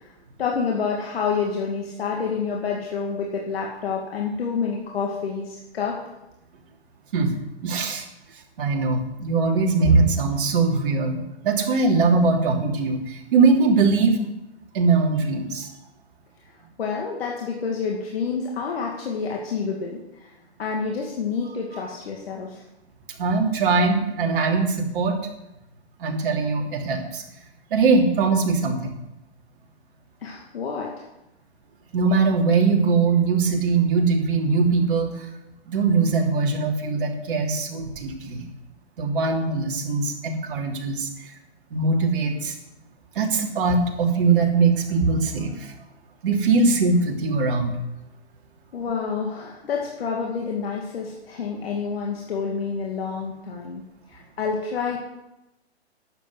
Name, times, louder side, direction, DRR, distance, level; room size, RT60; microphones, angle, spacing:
voice 1, 0.4-6.0 16.8-20.3 20.6-22.6 30.2-31.1 48.7-53.8 54.1-55.0, left 5 dB, 60° left, -1 dB, 2.5 m, -28 dB
voice 2, 7.6-8.1 8.6-14.2 14.7-15.7 23.2-25.2 26.0-27.2 27.7-29.0 31.9-35.3 35.7-38.4 39.0-41.3 41.7-42.5 43.1-45.7 46.2-47.8, right 4 dB, 50° right, 0 dB, 3.2 m, -21 dB
11.5 x 8.4 x 7.8 m, 0.94 s
hypercardioid pair, 150°, 33 cm